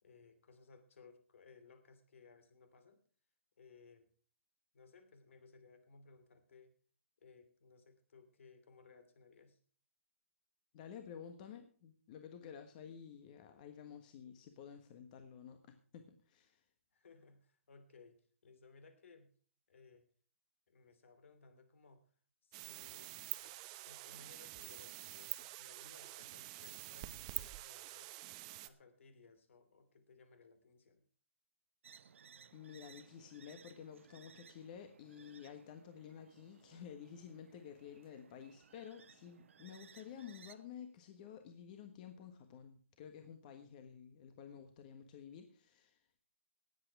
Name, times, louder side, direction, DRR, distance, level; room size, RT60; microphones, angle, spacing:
voice 1, 0.0-3.0 3.6-4.1 4.7-6.7 7.2-9.6 16.9-19.3 19.7-20.1 20.7-22.1 22.4-28.1 28.6-31.0, left 4 dB, 70° left, 9 dB, 3.0 m, -62 dB
voice 2, 10.7-16.6 32.5-46.2, left 8 dB, 40° left, 7 dB, 1.4 m, -52 dB
sound 1, 22.5-28.7, right 19 dB, 30° right, 0.7 m, -47 dB
sound 2, 31.8-40.5, right 7 dB, 70° right, 0.9 m, -62 dB
18.5 x 8.2 x 4.7 m, 0.43 s
hypercardioid pair, 150°, 7 cm